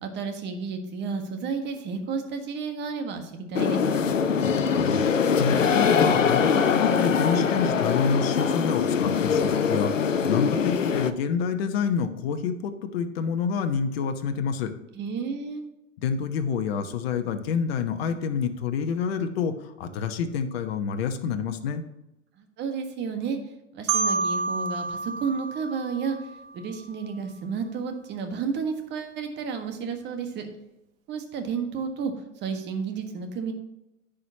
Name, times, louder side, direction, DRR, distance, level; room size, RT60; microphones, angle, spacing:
voice 1, 0.0-4.0 14.9-15.6 22.4-23.4 23.7-26.2 26.5-30.5 31.1-32.1 32.4-33.5, right 5 dB, 30° right, 6 dB, 1.6 m, -31 dB
sound 1, 3.5-11.1, left 6 dB, 80° left, 0.8 m, -23 dB
voice 2, 4.4-14.7 16.0-21.8, left 6 dB, 50° left, 7 dB, 1.1 m, -28 dB
Marimba xylophone, 23.9-26.7, right 3 dB, 50° right, 1.2 m, -29 dB
15.0 x 5.1 x 2.9 m, 0.92 s
figure-of-eight pair, 100°, 38 cm